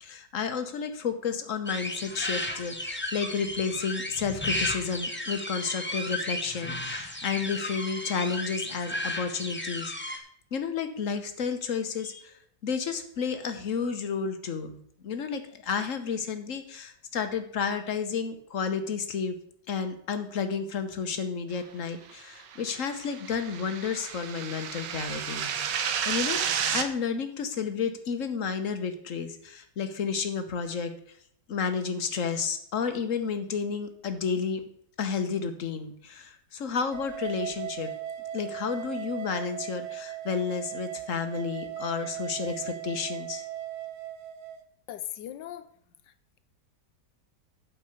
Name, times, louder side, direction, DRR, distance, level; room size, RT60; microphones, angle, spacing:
voice 1, 0.0-10.2 10.5-12.3 12.6-14.8 15.0-19.4 19.7-30.9 31.5-34.6 35.0-37.9 38.3-43.4, left 6 dB, 50° left, 8 dB, 1.3 m, -31 dB
sound 1, 1.7-10.2, left 1 dB, 10° left, 0.7 m, -34 dB
sound 2, 22.4-26.9, right 8 dB, 85° right, 1.6 m, -31 dB
sound 3, 36.9-44.6, right 11 dB, 55° right, 1.3 m, -38 dB
voice 2, 44.9-45.7, left 12 dB, 85° left, 12 dB, 1.3 m, -38 dB
8.7 x 5.8 x 6.5 m, 0.69 s
omnidirectional pair, 1.9 m